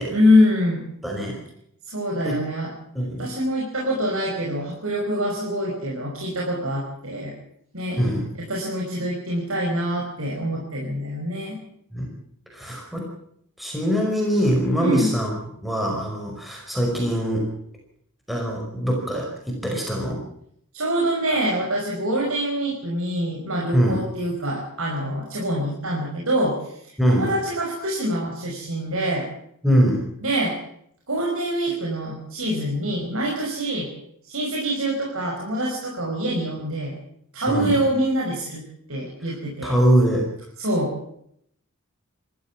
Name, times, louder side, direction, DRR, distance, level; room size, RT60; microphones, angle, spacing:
voice 1, 0.1-0.8 1.9-2.7 3.2-7.3 7.7-8.1 8.5-11.6 14.8-15.1 20.7-29.3 30.2-30.6 31.1-33.9 34.2-37.0 37.3-38.6 38.9-39.8 40.6-40.9, equal, 80° right, -2 dB, 5.3 m, -25 dB
voice 2, 1.0-1.4 2.2-2.4 2.9-3.3 8.0-8.3 11.9-12.1 12.5-13.1 13.6-15.3 15.6-17.5 18.3-20.2 23.7-24.0 27.0-27.3 29.6-30.1 37.5-37.8 39.6-40.3, equal, ahead, -1 dB, 5.2 m, -22 dB
27.0 x 14.0 x 7.3 m, 0.69 s
head